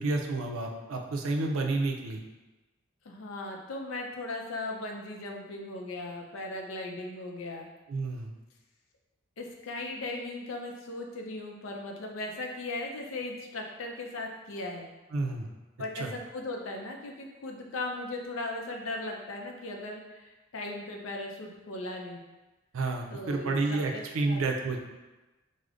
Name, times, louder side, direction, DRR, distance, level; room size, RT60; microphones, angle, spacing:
voice 1, 0.0-2.2 7.9-8.3 15.1-15.5 15.9-16.1 22.7-24.8, right 3 dB, 90° right, 2 dB, 0.4 m, -30 dB
voice 2, 3.0-7.7 9.4-14.9 15.8-22.2 23.1-23.5 23.9-24.4, left 2 dB, 75° left, 1 dB, 0.5 m, -38 dB
4.9 x 2.1 x 2.4 m, 1.1 s
head